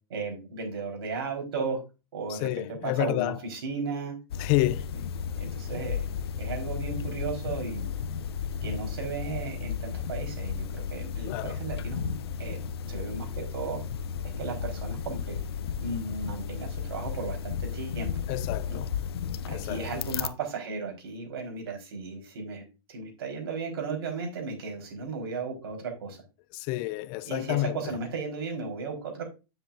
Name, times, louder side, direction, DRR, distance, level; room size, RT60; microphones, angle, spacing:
voice 1, 0.1-1.8 2.1-4.1 5.4-6.0 6.4-7.9 8.6-12.1 12.4-12.6 12.9-13.8 14.4-15.4 15.8-18.1 18.7-18.8 19.5-26.2 27.2-29.2, right 4 dB, 75° right, 4.4 m, -35 dB
voice 2, 2.3-3.4 4.4-4.9 11.3-11.6 18.3-18.9 19.5-19.8 26.5-27.9, left 17 dB, 45° left, 0.4 m, -29 dB
sound 1, 4.3-20.3, left 7 dB, 80° left, 0.7 m, -34 dB
9.9 x 7.6 x 2.6 m
hypercardioid pair, 120°, 13 cm